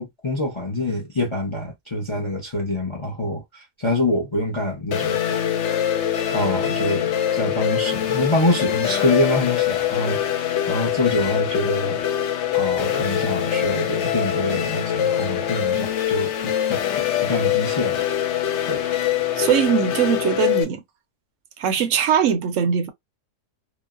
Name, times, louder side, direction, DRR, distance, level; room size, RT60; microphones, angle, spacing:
voice 1, 0.0-5.2 6.3-10.2 10.7-12.0 12.5-16.8 17.2-18.0 18.7-18.8, left 1 dB, 30° left, 0.5 m, -25 dB
sound 1, 4.9-20.6, left 11 dB, 65° left, 0.7 m, -23 dB
voice 2, 19.4-20.8 21.6-22.9, right 8 dB, 65° right, 0.8 m, -20 dB
3.0 x 2.1 x 2.3 m
omnidirectional pair, 1.6 m